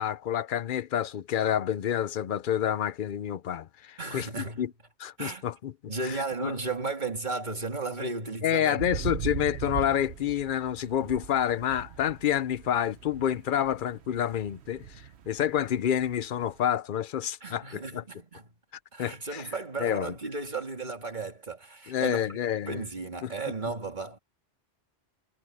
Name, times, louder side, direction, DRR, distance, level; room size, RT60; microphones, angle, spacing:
voice 1, 0.0-4.7 5.0-5.7 6.0-6.6 8.4-18.0 19.0-19.4 19.8-20.1 21.9-22.8 23.2-23.3, left 10 dB, 55° left, 0.8 m, -28 dB
voice 2, 4.0-4.6 5.2-5.5 5.9-8.8 17.4-18.5 18.9-22.4 22.6-24.2, right 3 dB, 45° right, 2.7 m, -34 dB
sound 1, 8.8-16.7, right 8 dB, 80° right, 1.1 m, -39 dB
omnidirectional pair, 1.1 m